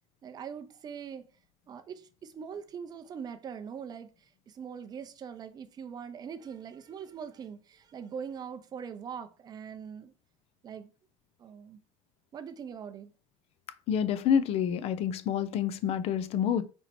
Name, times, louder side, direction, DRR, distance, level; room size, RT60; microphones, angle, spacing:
voice 1, 0.2-1.3 1.7-10.1 10.6-10.9 11.4-11.8 12.3-13.1, right 7 dB, 25° right, 0.6 m, -42 dB
voice 2, 13.9-16.6, left 8 dB, 45° left, 0.5 m, -28 dB
4.4 x 2.9 x 4.2 m
cardioid pair, 140°, 15 cm